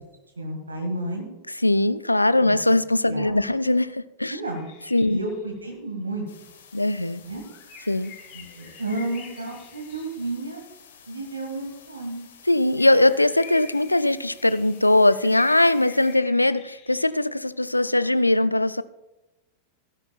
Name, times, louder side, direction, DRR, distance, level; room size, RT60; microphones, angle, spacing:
voice 1, 0.4-1.3 2.4-2.5 3.1-3.4 4.3-4.7 5.1-6.3 7.2-7.4 8.3-10.6 11.1-12.2, right 2 dB, 75° right, 3 dB, 1.5 m, -31 dB
voice 2, 1.6-4.4 4.9-5.2 6.7-7.2 7.9-8.1 12.5-18.8, left 1 dB, 85° left, 16 dB, 0.3 m, -20 dB
sound 1, 4.4-5.7 7.4-10.5 12.8-17.3, left 6 dB, 40° left, 2.3 m, -47 dB
sound 2, 6.3-16.2, left 7 dB, 60° left, 1.5 m, -51 dB
16.5 x 11.5 x 2.3 m, 1.0 s
figure-of-eight pair, 90°, 0 cm